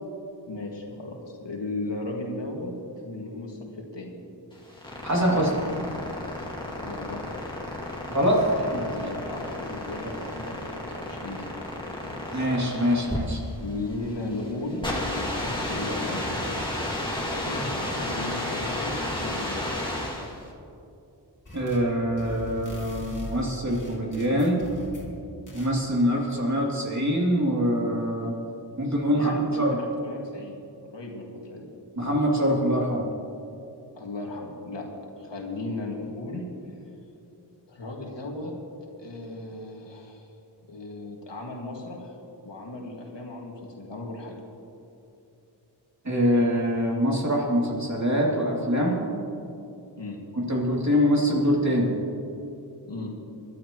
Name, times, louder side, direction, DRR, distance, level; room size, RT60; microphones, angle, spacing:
voice 1, 0.5-2.7 3.0-4.2 6.8-7.2 8.6-11.7 12.0-12.2 13.6-16.2 17.3-19.6 29.1-30.6 30.9-31.7 33.9-34.9 35.2-36.4 37.7-38.5 39.0-40.3 40.7-44.4 50.0-50.2 52.8-53.1, left 2 dB, 85° left, -1 dB, 2.1 m, -36 dB
sound 1, 4.5-20.4, left 1 dB, 10° left, 2.4 m, -32 dB
voice 2, 5.0-5.6 8.1-8.4 8.7-8.9 12.3-13.4 21.5-24.6 25.5-28.3 28.8-29.8 32.0-33.1 46.0-49.0 50.3-51.9, equal, 40° right, -3 dB, 2.9 m, -24 dB
sound 2, 21.4-21.9 22.2-25.1 25.5-25.7, equal, 45° left, 2.6 m, -40 dB
22.5 x 12.0 x 3.1 m, 2.7 s
wide cardioid pair, 65°, 42 cm